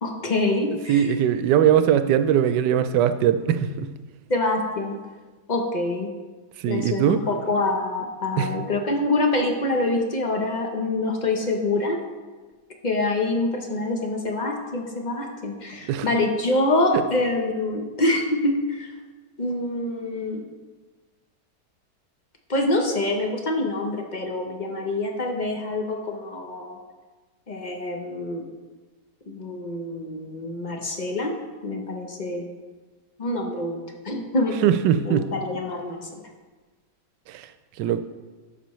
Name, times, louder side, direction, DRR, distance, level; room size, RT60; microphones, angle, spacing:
voice 1, 0.0-1.1 4.3-5.0 5.5-6.1 6.7-12.0 12.8-18.9 19.4-20.4 22.5-26.8 27.5-28.4 29.3-31.3 31.6-32.5 33.2-34.5 35.0-36.0, left 2 dB, 40° left, 2 dB, 0.6 m, -25 dB
voice 2, 0.9-3.9 6.6-7.2 8.4-8.5 15.8-16.1 34.6-35.3 37.3-37.5 37.8-38.0, right 9 dB, 85° right, 10 dB, 1.2 m, -20 dB
11.0 x 6.7 x 3.1 m, 1.3 s
omnidirectional pair, 1.9 m